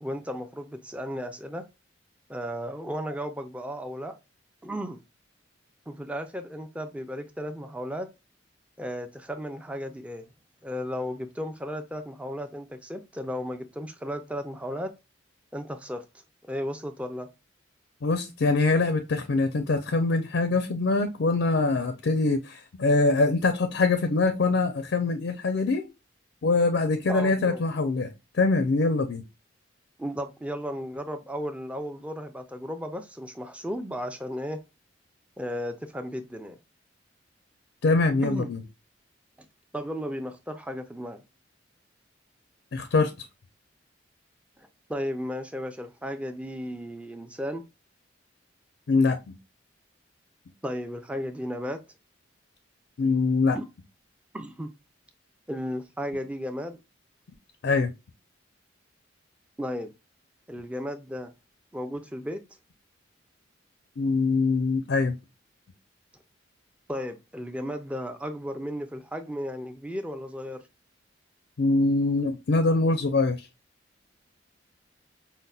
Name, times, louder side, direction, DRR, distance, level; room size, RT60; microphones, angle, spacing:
voice 1, 0.0-1.6 2.3-4.1 4.6-5.0 5.9-8.1 8.8-10.3 10.6-14.9 15.5-16.0 16.4-17.3 27.1-27.6 30.0-34.6 35.4-36.6 38.2-38.5 39.7-41.2 44.6-47.6 50.6-51.8 53.5-53.6 54.3-54.7 55.5-56.8 59.6-59.9 60.5-61.3 61.7-62.4 66.9-70.6, equal, 5° right, 0.4 m, -34 dB
voice 2, 18.0-25.8 26.4-28.1 28.3-29.2 37.8-38.6 42.7-43.1 48.9-49.3 53.0-53.6 57.6-57.9 64.0-65.2 71.6-73.5, left 3 dB, 65° left, 0.4 m, -23 dB
5.3 x 2.1 x 2.3 m
head